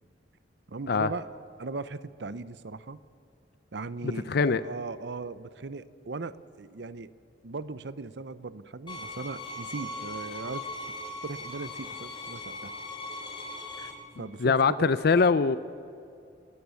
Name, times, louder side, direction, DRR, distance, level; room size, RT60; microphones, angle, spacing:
voice 1, 0.7-1.3 1.6-3.0 3.7-7.1 7.4-10.7 11.2-12.7 13.8-13.9 14.2-14.9, right 3 dB, 70° right, 16 dB, 0.7 m, -38 dB
voice 2, 4.3-4.6 14.4-15.6, left 4 dB, 60° left, 15 dB, 0.5 m, -22 dB
sound 1, 8.9-13.9, left 2 dB, 25° left, 3.8 m, -39 dB
30.0 x 14.5 x 7.0 m, 2.6 s
head